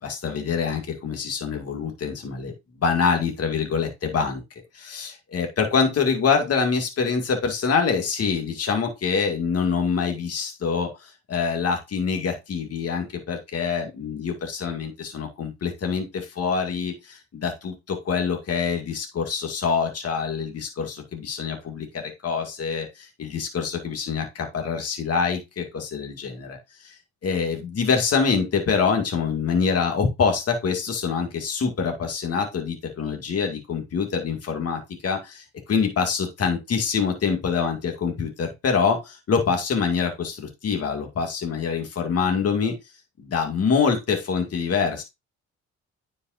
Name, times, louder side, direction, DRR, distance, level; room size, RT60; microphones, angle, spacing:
voice 1, 0.0-4.4 4.7-26.6 26.8-27.0 27.2-42.7 43.2-45.0, left 5 dB, 55° left, 4 dB, 2.2 m, -25 dB
9.8 x 5.4 x 2.6 m, 0.22 s
cardioid pair, 90°, 30 cm